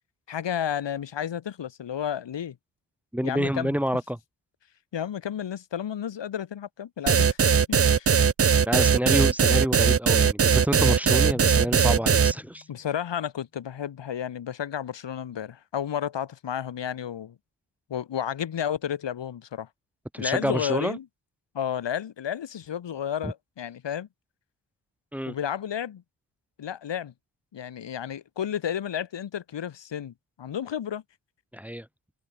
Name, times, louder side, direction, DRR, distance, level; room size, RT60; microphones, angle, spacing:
voice 1, 0.3-2.6 3.2-3.8 4.9-7.4 7.7-8.2 12.7-17.4 17.9-19.7 20.2-21.0 21.5-24.1 25.3-26.0 26.6-27.1 27.5-31.0, left 9 dB, 70° left, 4.9 m, -32 dB
voice 2, 3.1-4.2 8.6-12.6 20.1-21.0 23.2-23.3 25.1-25.3 31.5-31.9, equal, 5° right, 3.3 m, -28 dB
sound 1, 7.1-12.3, right 6 dB, 30° right, 0.9 m, -20 dB
Keyboard (musical), 11.0-12.9, left 5 dB, 35° left, 6.9 m, -44 dB
wide cardioid pair, 180°, 45 cm